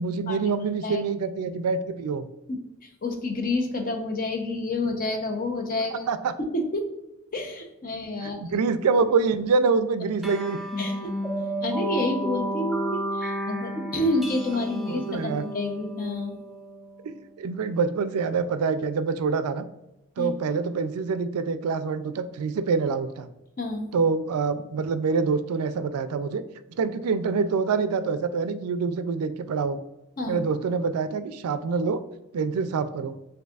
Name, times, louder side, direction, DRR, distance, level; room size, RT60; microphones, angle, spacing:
voice 1, 0.0-2.3 6.1-6.3 8.2-10.6 14.9-15.4 17.0-19.6 20.2-23.3 23.9-26.4 26.8-29.8 30.3-32.0 32.3-33.2, right 4 dB, 80° right, 12 dB, 0.3 m, -26 dB
voice 2, 2.5-6.1 6.4-6.8 7.3-8.4 10.8-11.1 11.6-16.4 20.2-20.3 23.6-23.9 30.2-30.4, left 2 dB, 40° left, 4 dB, 0.7 m, -29 dB
sound 1, 10.2-17.1, right 1 dB, ahead, 0.3 m, -32 dB
6.3 x 2.6 x 2.3 m, 0.95 s
head